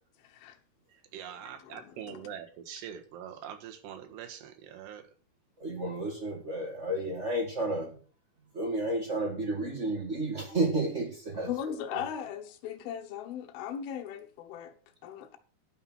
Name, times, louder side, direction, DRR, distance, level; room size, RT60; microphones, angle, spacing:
voice 1, 0.2-0.6 1.6-2.2 11.5-14.7 15.0-15.4, left 9 dB, 70° left, 2.8 m, -38 dB
voice 2, 0.9-5.1, right 9 dB, 85° right, 3.5 m, -44 dB
voice 3, 5.6-8.0 8.5-12.0, right 2 dB, 45° right, 0.9 m, -32 dB
12.0 x 5.7 x 6.1 m
omnidirectional pair, 4.8 m